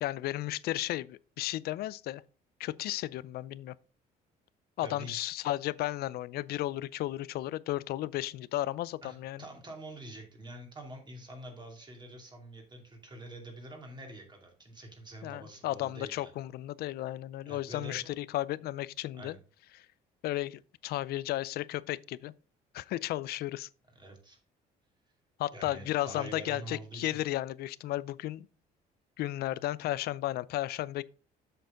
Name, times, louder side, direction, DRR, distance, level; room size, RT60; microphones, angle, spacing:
voice 1, 0.0-2.2 2.6-3.8 4.8-9.4 15.2-19.4 19.8-19.9 20.2-22.3 22.7-23.7 25.4-28.5 29.2-31.0, left 15 dB, 70° left, 0.4 m, -34 dB
voice 2, 4.8-5.2 9.0-16.3 17.5-18.1 19.1-19.4 23.9-24.4 25.5-27.2, right 1 dB, 25° right, 2.7 m, -46 dB
7.8 x 6.6 x 3.8 m
cardioid pair, 110°, 17 cm